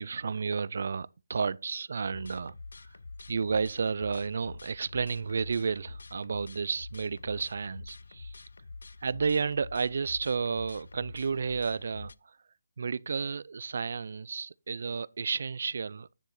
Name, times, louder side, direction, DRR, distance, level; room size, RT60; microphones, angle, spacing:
voice 1, 0.0-2.6 3.3-8.4 9.0-12.1 12.8-16.1, right 5 dB, 60° right, 0.4 m, -32 dB
sound 1, 2.0-12.1, left 3 dB, 80° left, 0.4 m, -46 dB
10.0 x 6.3 x 4.1 m
hypercardioid pair, 160°, 0 cm